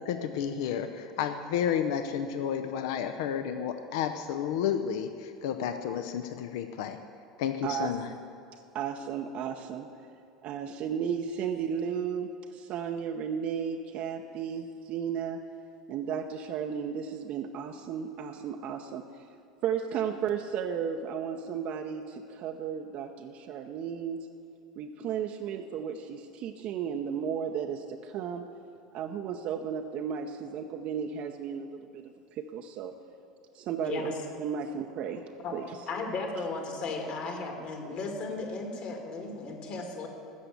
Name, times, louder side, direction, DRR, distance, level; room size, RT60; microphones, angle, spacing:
voice 1, 0.0-7.0 7.4-8.1, left 8 dB, 60° left, 8 dB, 0.5 m, -31 dB
voice 2, 7.6-8.0 8.7-9.9 10.4-15.4 15.9-19.3 19.6-24.3 24.8-28.5 28.9-33.0 33.5-34.1 34.4-35.8, right 7 dB, 45° right, 4 dB, 0.6 m, -34 dB
voice 3, 33.8-34.1 35.4-35.6 35.9-40.1, left 3 dB, 45° left, 3 dB, 2.0 m, -35 dB
13.5 x 6.7 x 8.1 m, 2.6 s
figure-of-eight pair, 75°, 3 cm